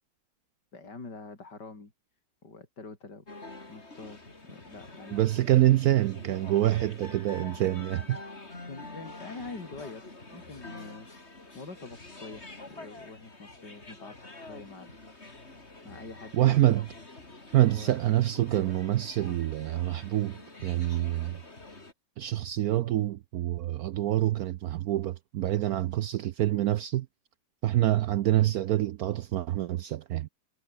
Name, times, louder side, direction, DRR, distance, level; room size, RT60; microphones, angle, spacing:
voice 1, 0.7-1.9 2.4-3.3 3.7-5.6 8.6-14.9 15.8-16.8 17.5-18.0 18.3-18.7, left 3 dB, 55° left, 4.8 m, -45 dB
sound 1, 3.3-21.9, left 2 dB, 30° left, 4.3 m, -47 dB
voice 2, 5.1-8.2 16.3-16.9 17.5-21.4 22.2-27.1 27.6-30.3, right 14 dB, 75° right, 0.8 m, -26 dB
omnidirectional pair, 2.1 m